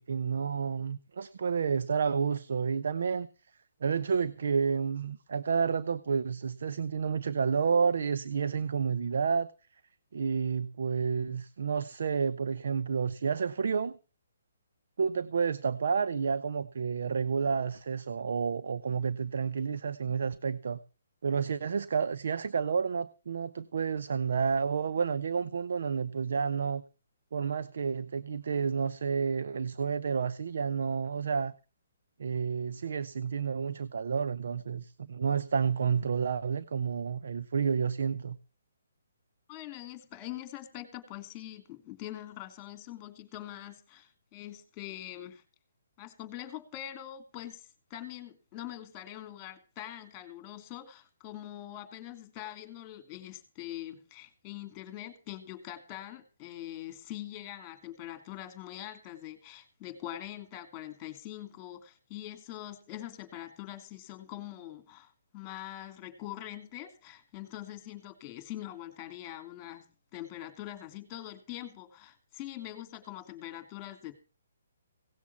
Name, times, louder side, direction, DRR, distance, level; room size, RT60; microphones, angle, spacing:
voice 1, 0.0-3.3 3.8-9.5 10.1-13.9 15.0-20.8 21.2-26.8 27.3-31.5 32.2-38.4, right 6 dB, 65° right, 0.8 m, -30 dB
voice 2, 39.5-45.4 46.0-74.1, left 13 dB, 20° left, 3.0 m, -43 dB
17.5 x 7.3 x 7.1 m
hypercardioid pair, 160°, 0 cm